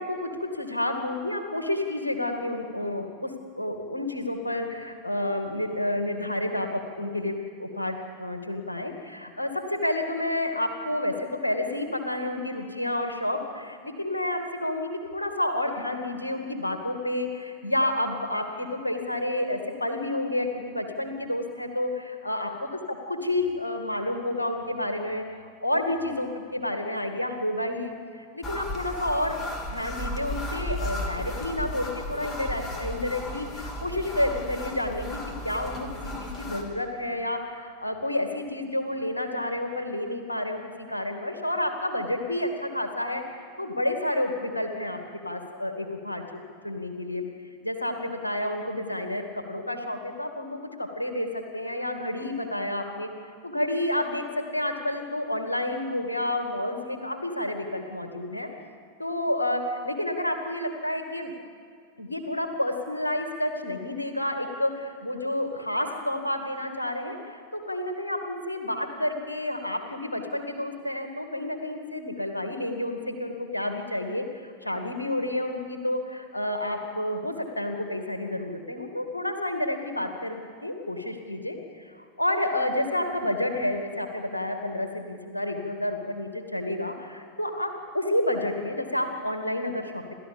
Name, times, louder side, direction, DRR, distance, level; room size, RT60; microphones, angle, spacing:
voice 1, 0.0-29.4 29.7-46.2 46.6-47.3 47.6-53.1 53.4-58.5 59.0-61.3 62.0-81.6 82.0-90.1, left 1 dB, 85° left, 5 dB, 2.3 m, -30 dB
sound 1, 28.4-36.6, left 1 dB, 25° left, 3.0 m, -34 dB
29.0 x 13.0 x 7.2 m, 2.2 s
figure-of-eight pair, 90°, 0 cm